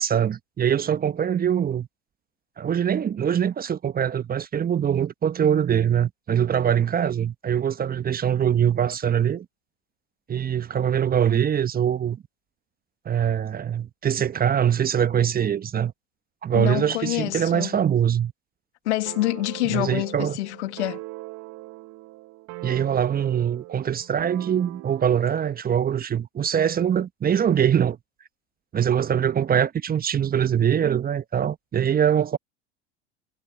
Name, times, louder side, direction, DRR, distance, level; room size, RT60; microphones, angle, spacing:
voice 1, 0.0-1.9 2.6-9.4 10.3-12.2 13.0-15.9 16.4-18.3 19.6-20.4 22.6-28.0 28.7-32.4, right 9 dB, 25° right, 1.2 m, -23 dB
voice 2, 16.5-17.8 18.9-21.0, left 17 dB, 70° left, 1.9 m, -27 dB
sound 1, 19.1-25.3, right 20 dB, 50° right, 1.8 m, -41 dB
hypercardioid pair, 80°, 35 cm